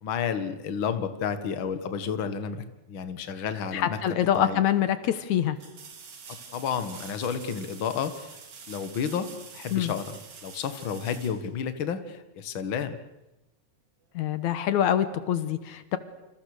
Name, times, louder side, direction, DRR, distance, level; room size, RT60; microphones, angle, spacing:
voice 1, 0.0-4.0 4.3-4.6 6.3-8.4 8.7-13.0, left 7 dB, 45° left, 10 dB, 2.1 m, -31 dB
voice 2, 3.7-5.6 9.7-9.9 14.1-16.0, left 10 dB, 75° left, 12 dB, 2.5 m, -25 dB
sound 1, 5.6-12.2 15.0-15.1, right 5 dB, 80° right, 4.3 m, -46 dB
28.0 x 27.0 x 6.7 m, 0.98 s
omnidirectional pair, 3.4 m